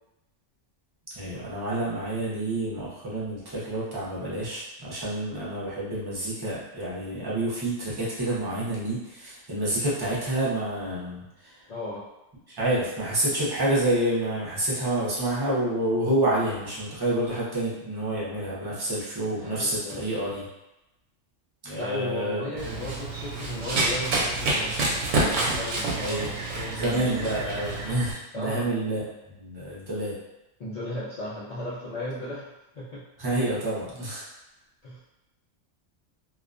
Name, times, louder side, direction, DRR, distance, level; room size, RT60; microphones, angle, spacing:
voice 1, 1.1-11.6 12.5-20.5 21.6-22.7 23.7-23.9 26.0-26.2 26.8-30.2 33.2-34.2, right 1 dB, 30° right, -7 dB, 0.5 m, -28 dB
voice 2, 11.7-12.0 19.3-20.0 21.8-24.8 25.2-27.4 28.3-28.7 30.6-33.0 34.8-35.0, left 1 dB, 80° left, -9 dB, 0.3 m, -36 dB
Run, 22.6-28.1, right 2 dB, 75° right, 0.9 m, -28 dB
2.3 x 2.2 x 2.4 m, 0.95 s
omnidirectional pair, 1.3 m